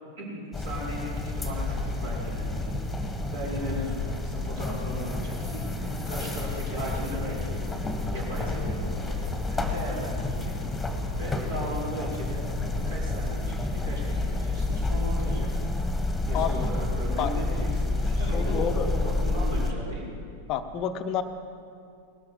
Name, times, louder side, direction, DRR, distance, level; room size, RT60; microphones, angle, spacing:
voice 1, 0.2-7.6 8.1-9.2 9.5-10.5 10.8-12.5 12.7-15.5 16.3-20.2, right 1 dB, 60° right, -5 dB, 4.9 m, -37 dB
sound 1, 0.5-19.7, left 2 dB, 5° left, 1.6 m, -29 dB
voice 2, 16.3-16.7 17.2-17.3 18.3-18.9 20.5-21.2, left 9 dB, 35° left, 9 dB, 0.7 m, -29 dB
19.0 x 12.5 x 5.0 m, 2.4 s
figure-of-eight pair, 90°, 0 cm